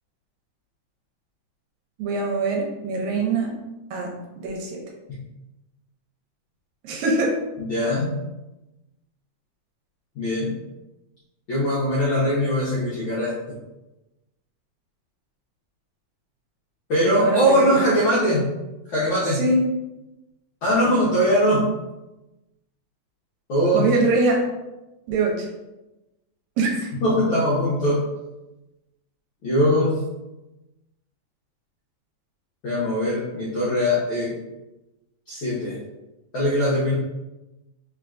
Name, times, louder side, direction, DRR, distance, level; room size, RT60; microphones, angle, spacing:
voice 1, 2.0-3.5 3.9-4.8 6.8-7.4 17.1-17.9 19.4-19.6 23.7-24.4 25.1-25.5 26.6-26.9, right 3 dB, 75° right, 0 dB, 1.9 m, -23 dB
voice 2, 7.6-8.2 10.1-10.5 11.5-13.3 16.9-18.5 18.9-19.4 20.6-21.7 23.5-23.9 27.0-28.0 29.4-30.0 32.6-34.3 35.3-35.8 36.3-36.9, equal, 75° left, -8 dB, 1.1 m, -21 dB
4.3 x 3.4 x 2.5 m, 1.0 s
omnidirectional pair, 3.5 m